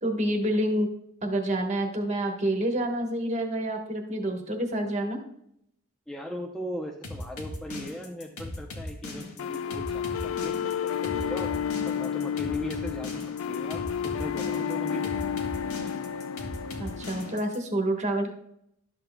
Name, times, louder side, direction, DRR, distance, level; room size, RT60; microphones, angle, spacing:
voice 1, 0.0-0.9 1.2-5.2 16.8-18.3, right 1 dB, 30° right, 3 dB, 1.3 m, -28 dB
voice 2, 6.1-11.5 11.8-13.2 13.5-15.2, equal, 5° left, 1 dB, 0.6 m, -38 dB
sound 1, 7.0-17.6, left 1 dB, 90° left, 1.7 m, -38 dB
sound 2, 9.4-17.4, left 8 dB, 65° left, 0.4 m, -31 dB
12.0 x 7.9 x 2.3 m, 0.72 s
head